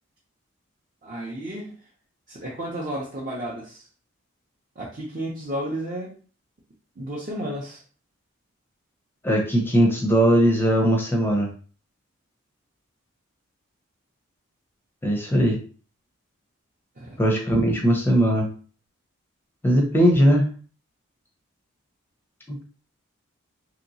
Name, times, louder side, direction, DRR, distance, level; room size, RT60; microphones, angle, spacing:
voice 1, 1.0-1.7 2.3-3.9 4.8-6.1 7.0-7.8 17.0-17.2, right 1 dB, 35° right, -4 dB, 0.6 m, -32 dB
voice 2, 9.2-11.5 15.0-15.6 17.2-18.5 19.6-20.5 22.5-22.6, equal, 10° left, 1 dB, 0.5 m, -19 dB
3.0 x 2.8 x 2.7 m, 0.40 s
head